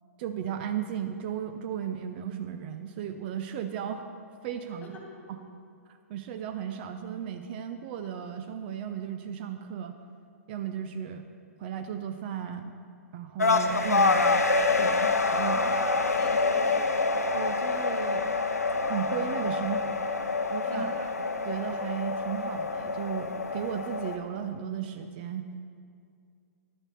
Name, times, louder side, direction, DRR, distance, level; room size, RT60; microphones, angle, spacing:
voice 1, 0.2-4.0 4.4-5.0 5.9-10.0 10.5-11.3 11.6-12.7 13.1-14.3 14.8-15.6 17.3-18.3 18.9-20.0 20.5-21.1 21.4-25.5, right 9 dB, 40° right, 7 dB, 0.5 m, -35 dB
sound 1, 13.4-24.2, left 3 dB, 80° left, 0.7 m, -27 dB
voice 2, 15.3-17.0 20.6-21.1, left 1 dB, 15° left, 0 dB, 1.7 m, -44 dB
11.0 x 7.0 x 5.4 m, 2.3 s
figure-of-eight pair, 110°, 8 cm